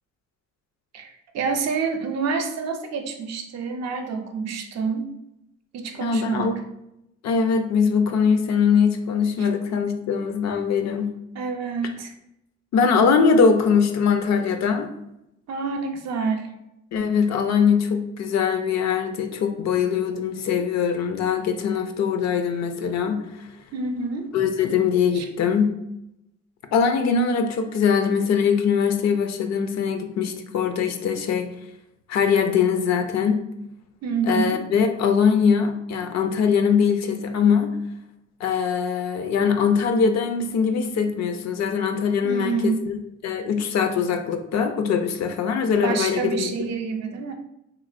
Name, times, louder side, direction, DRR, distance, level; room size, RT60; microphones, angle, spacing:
voice 1, 0.9-5.1 5.7-6.5 9.4-9.5 11.4-12.1 15.5-16.5 23.7-24.3 25.1-25.2 34.0-34.6 42.2-42.8 45.8-47.3, right 5 dB, 60° right, 5 dB, 0.5 m, -27 dB
voice 2, 6.0-6.6 7.2-11.1 12.7-14.9 16.9-23.5 24.3-25.7 26.7-31.5 32.1-33.4 34.2-37.7 38.4-43.0 43.2-46.7, left 6 dB, 65° left, 7 dB, 0.5 m, -22 dB
3.1 x 2.9 x 2.5 m, 0.85 s
cardioid pair, 90°, 30 cm